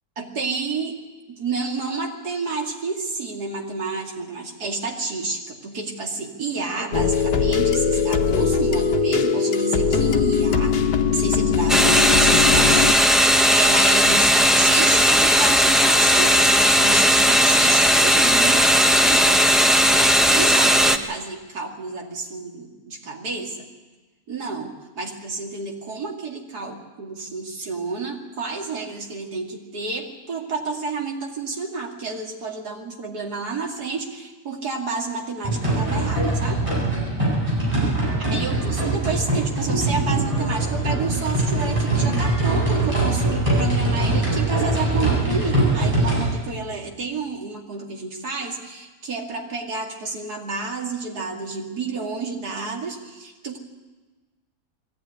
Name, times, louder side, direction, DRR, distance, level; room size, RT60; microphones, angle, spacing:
voice 1, 0.2-1.0 1.3-10.7 11.1-18.7 18.9-19.5 19.9-23.7 24.3-36.6 38.3-53.6, right 4 dB, 70° right, 0 dB, 3.1 m, -30 dB
sound 1, 6.9-12.9, left 6 dB, 80° left, 1.8 m, -20 dB
sound 2, 11.7-21.0, equal, ahead, 0.3 m, -16 dB
sound 3, 35.4-46.3, right 2 dB, 20° right, 8.2 m, -22 dB
21.0 x 15.0 x 9.6 m, 1.2 s
omnidirectional pair, 1.8 m